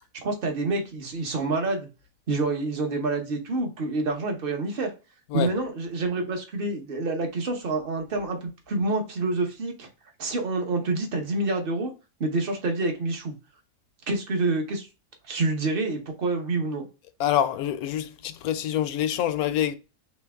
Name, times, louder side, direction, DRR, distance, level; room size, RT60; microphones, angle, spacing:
voice 1, 0.2-1.9 2.3-4.9 5.3-9.9 10.2-11.9 12.2-13.3 14.1-14.9 15.3-16.9, right 2 dB, 45° right, 1.1 m, -27 dB
voice 2, 17.2-19.8, left 10 dB, 80° left, 1.1 m, -26 dB
4.4 x 3.4 x 3.5 m
omnidirectional pair, 1.5 m